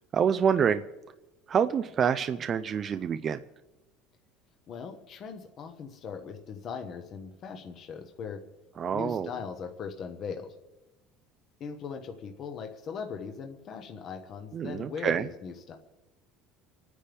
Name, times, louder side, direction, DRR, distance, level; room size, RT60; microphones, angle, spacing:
voice 1, 0.1-0.8 1.5-3.4 8.8-9.3 14.5-15.2, right 7 dB, 35° right, 10 dB, 0.4 m, -26 dB
voice 2, 4.7-8.4 8.9-10.5 11.6-15.8, left 6 dB, 45° left, 4 dB, 1.1 m, -39 dB
29.0 x 9.7 x 3.5 m, 1.1 s
cardioid pair, 140°, 0 cm